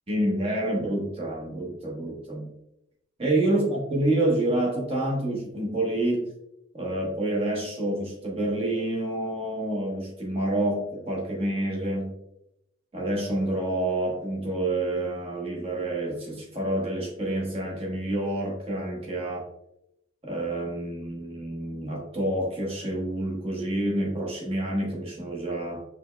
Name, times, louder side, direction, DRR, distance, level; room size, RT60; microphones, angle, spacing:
voice 1, 0.1-2.5 3.2-6.3 6.7-12.1 12.9-19.4 20.2-25.8, right 1 dB, 30° right, -3 dB, 1.1 m, -28 dB
5.2 x 3.2 x 2.2 m, 0.82 s
head